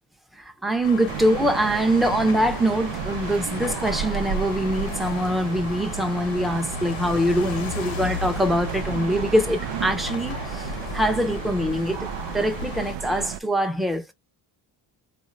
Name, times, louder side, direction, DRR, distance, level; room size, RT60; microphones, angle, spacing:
voice 1, 0.3-14.1, equal, ahead, 0.6 m, -24 dB
sound 1, 0.8-13.0, left 8 dB, 80° left, 1.1 m, -35 dB
sound 2, 1.1-13.4, right 11 dB, 70° right, 0.5 m, -33 dB
4.7 x 2.6 x 3.0 m
cardioid pair, 150°, 45 cm